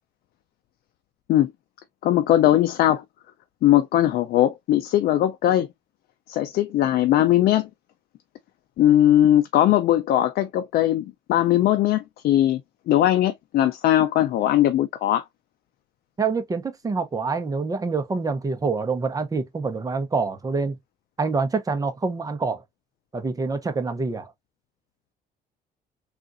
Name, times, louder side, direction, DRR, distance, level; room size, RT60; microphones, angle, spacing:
voice 1, 2.0-3.0 3.6-5.7 6.3-7.7 8.8-12.6 12.9-15.2, left 12 dB, 65° left, 0.5 m, -20 dB
voice 2, 16.2-20.8 21.2-22.6 23.1-24.3, right 4 dB, 20° right, 0.8 m, -26 dB
3.7 x 2.4 x 2.5 m
cardioid pair, 110°, 17 cm